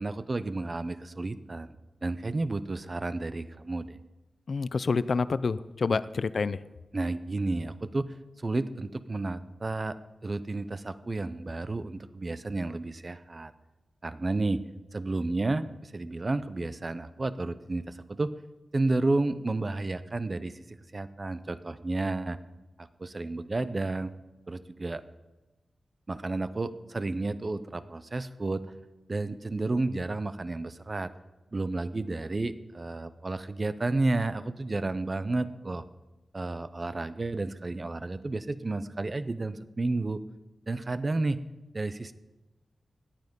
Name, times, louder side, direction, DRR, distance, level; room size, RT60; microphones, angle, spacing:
voice 1, 0.0-1.8 2.0-4.0 6.9-10.0 10.2-13.5 14.0-14.6 14.9-18.3 18.7-20.6 20.9-22.4 22.8-24.1 24.5-25.0 26.1-28.7 29.1-31.1 31.5-35.8 36.3-40.2 40.7-41.4 41.7-42.1, right 2 dB, 30° right, 14 dB, 0.6 m, -31 dB
voice 2, 4.5-6.6, left 4 dB, 50° left, 16 dB, 0.5 m, -28 dB
17.5 x 11.5 x 5.3 m, 1.1 s
wide cardioid pair, 155°, 0 cm